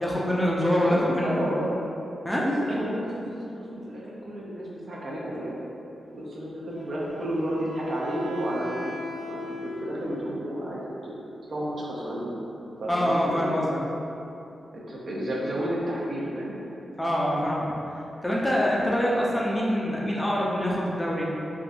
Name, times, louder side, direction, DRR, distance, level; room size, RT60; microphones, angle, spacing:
voice 1, 0.0-1.4 2.2-2.4 12.9-13.8 17.0-17.7 18.2-21.2, equal, 10° left, -5 dB, 0.4 m, -25 dB
voice 2, 0.8-1.7 2.4-5.5 6.1-8.9 9.3-11.1 11.5-12.3 12.8-13.5 14.7-16.5, equal, 55° right, -5 dB, 0.6 m, -31 dB
Wind instrument woodwind instrument, 6.7-10.3, left 1 dB, 55° left, 0.8 m, -39 dB
3.4 x 2.6 x 2.4 m, 2.9 s
cardioid pair, 90°, 0 cm